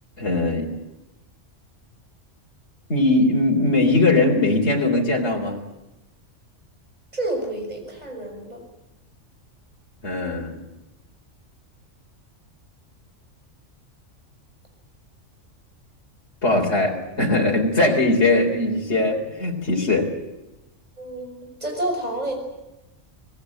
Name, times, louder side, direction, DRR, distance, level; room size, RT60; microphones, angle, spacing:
voice 1, 0.2-0.7 2.9-5.6 10.0-10.6 16.4-20.1, left 2 dB, 60° left, 0 dB, 4.0 m, -20 dB
voice 2, 7.1-8.6 21.0-22.4, right 1 dB, 35° right, 2 dB, 6.6 m, -29 dB
25.5 x 19.0 x 8.9 m, 1.0 s
omnidirectional pair, 1.3 m